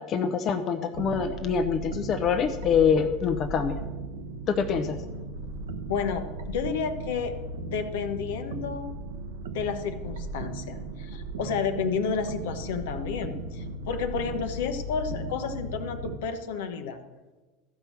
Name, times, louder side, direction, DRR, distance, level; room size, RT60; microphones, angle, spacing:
voice 1, 0.1-3.8 4.5-5.0, left 6 dB, 40° left, 7 dB, 0.8 m, -25 dB
sound 1, 0.9-16.2, right 2 dB, 70° right, 0.8 m, -37 dB
voice 2, 5.9-7.3 7.7-8.9 9.5-17.0, left 6 dB, 65° left, 7 dB, 0.9 m, -31 dB
14.0 x 5.6 x 6.1 m, 1.2 s
figure-of-eight pair, 80°, 0 cm